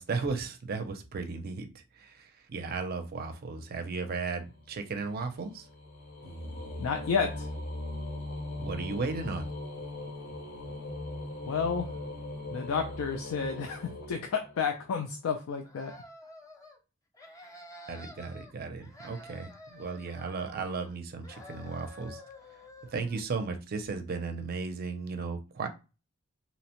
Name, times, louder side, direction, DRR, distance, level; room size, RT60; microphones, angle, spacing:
voice 1, 0.0-5.7 8.6-9.5 17.9-22.2 22.9-25.7, right 4 dB, 45° right, 7 dB, 0.4 m, -35 dB
sound 1, 3.9-14.9, left 2 dB, 55° left, 0.7 m, -40 dB
voice 2, 6.8-7.5 11.5-11.9 12.5-15.9, left 6 dB, 80° left, 5 dB, 0.4 m, -31 dB
sound 2, 15.6-16.8 17.1-18.5 18.8-21.0 21.2-23.2, left 1 dB, 15° left, 0.4 m, -50 dB
2.8 x 2.1 x 2.8 m, 0.30 s
head